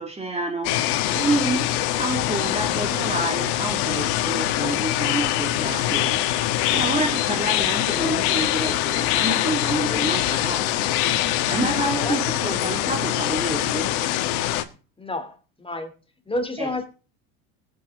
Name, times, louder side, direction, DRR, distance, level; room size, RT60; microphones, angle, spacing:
voice 1, 0.0-10.8 11.2-14.0 16.6-16.7, right 2 dB, 15° right, 2.3 m, -29 dB
sound 1, 0.6-14.6, left 13 dB, 65° left, 1.6 m, -23 dB
voice 2, 15.0-15.9 16.3-16.9, left 2 dB, 15° left, 3.0 m, -30 dB
20.0 x 8.8 x 3.7 m
hypercardioid pair, 85°, 42 cm